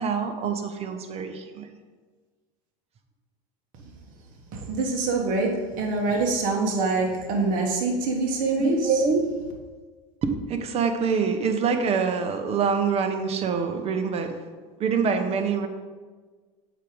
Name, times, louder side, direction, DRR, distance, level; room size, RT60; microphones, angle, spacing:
voice 1, 0.0-1.7 8.6-9.2 10.2-14.4 14.8-15.7, right 5 dB, 35° right, 7 dB, 0.8 m, -25 dB
voice 2, 4.5-8.8, right 3 dB, 50° right, 0 dB, 1.4 m, -25 dB
6.8 x 4.9 x 4.6 m, 1.4 s
supercardioid pair, 120°, 18 cm